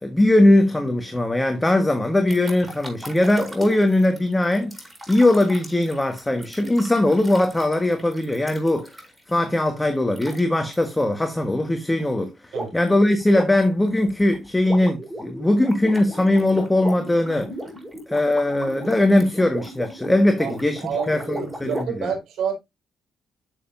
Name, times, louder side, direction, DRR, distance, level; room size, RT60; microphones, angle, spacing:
voice 1, 0.0-4.7 5.1-8.9 9.3-17.5 18.1-22.1, left 1 dB, 10° left, 1.4 m, -20 dB
sound 1, 2.3-9.3 10.1-10.4 10.7-10.9 12.5-12.9 13.2-21.8, equal, 15° right, 5.2 m, -36 dB
voice 2, 20.8-22.5, right 7 dB, 80° right, 4.7 m, -28 dB
11.0 x 6.8 x 2.6 m
cardioid pair, 90°, 0 cm